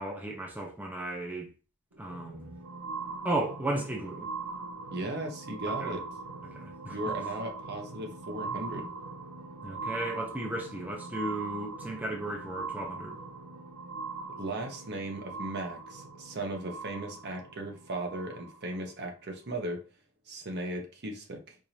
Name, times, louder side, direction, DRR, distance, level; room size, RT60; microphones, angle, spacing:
voice 1, 0.0-1.5 2.0-2.5 3.2-4.3 5.7-6.0 6.5-7.0 9.6-13.2, right 1 dB, 5° right, 0.6 m, -35 dB
sound 1, 1.9-18.8 19.5-19.6, right 4 dB, 85° right, 0.6 m, -41 dB
voice 2, 4.9-6.0 6.9-8.9 14.4-19.8 20.3-21.6, right 1 dB, 50° right, 0.8 m, -37 dB
4.7 x 2.6 x 2.8 m
head